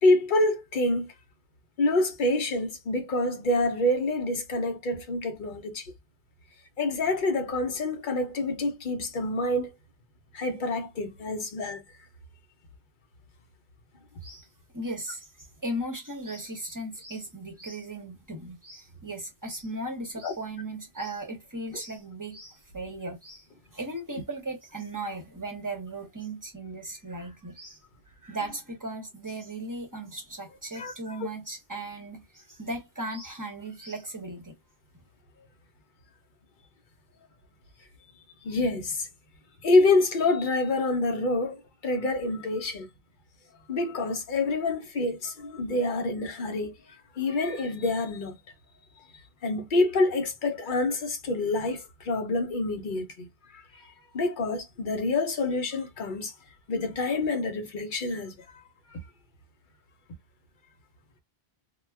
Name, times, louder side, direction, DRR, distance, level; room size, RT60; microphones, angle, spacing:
voice 1, 0.0-1.1 1.8-5.9 6.8-9.7 10.3-11.8 20.2-20.3 30.8-31.3 38.4-39.1 39.6-42.9 43.7-46.7 47.2-48.4 49.4-56.3 56.7-58.6 58.9-59.0, left 2 dB, 55° left, 0.8 m, -27 dB
voice 2, 14.7-23.5 23.7-27.8 28.1-34.6, right 1 dB, 20° right, 0.8 m, -37 dB
2.3 x 2.2 x 3.3 m
omnidirectional pair, 1.1 m